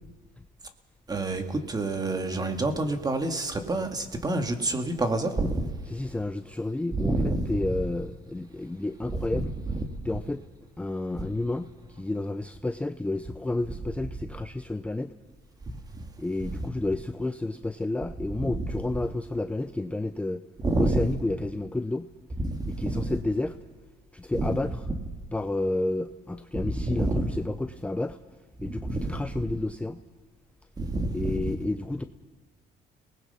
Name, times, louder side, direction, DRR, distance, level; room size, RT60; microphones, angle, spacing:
voice 1, 1.1-5.7 6.9-7.8 9.1-9.9 11.2-11.3 16.4-16.7 18.4-18.8 20.6-21.1 22.4-23.2 24.3-24.9 26.5-27.4 28.6-29.2 30.8-31.5, right 2 dB, 25° right, 6 dB, 2.1 m, -28 dB
voice 2, 5.9-9.5 10.0-10.4 10.8-15.1 16.2-20.4 20.8-22.1 22.7-23.6 24.1-24.8 25.3-28.2 28.6-30.0 31.1-32.0, left 2 dB, 5° left, 9 dB, 0.6 m, -31 dB
30.0 x 19.0 x 5.6 m, 1.2 s
cardioid pair, 110°, 17 cm